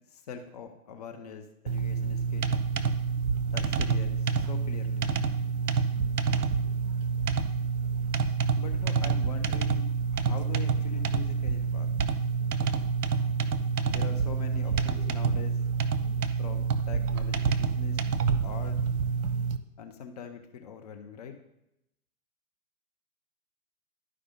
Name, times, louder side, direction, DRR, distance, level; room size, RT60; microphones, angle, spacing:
voice 1, 0.1-2.5 3.5-5.1 8.6-11.9 13.8-15.6 16.4-18.0 18.3-18.8 19.8-21.3, left 6 dB, 25° left, 5 dB, 0.5 m, -43 dB
sound 1, 1.7-19.6, right 5 dB, 80° right, 0.8 m, -28 dB
12.0 x 4.8 x 3.5 m, 0.85 s
hypercardioid pair, 130°, 46 cm